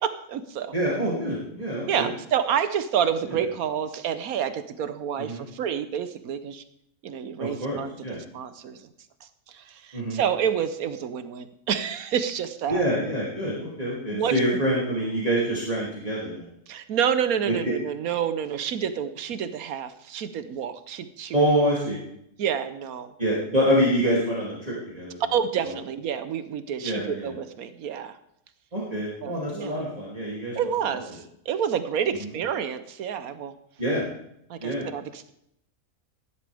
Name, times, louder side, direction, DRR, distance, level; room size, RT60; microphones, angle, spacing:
voice 1, 0.0-0.7 1.9-6.6 7.0-7.9 8.3-8.8 9.5-12.8 14.1-14.6 16.7-21.4 22.4-23.1 25.3-28.2 29.2-29.8 30.5-33.5 34.5-35.3, right 8 dB, 85° right, 11 dB, 1.3 m, -28 dB
voice 2, 0.7-2.1 3.3-3.4 5.2-5.4 7.4-8.2 9.9-10.2 12.7-16.5 17.5-17.7 21.3-22.0 23.2-25.2 25.6-25.7 26.8-27.3 28.7-30.6 30.9-31.0 32.2-32.3 33.8-34.0 34.6-34.9, equal, 25° right, -6 dB, 2.8 m, -26 dB
16.0 x 11.5 x 3.5 m, 0.75 s
omnidirectional pair, 1.5 m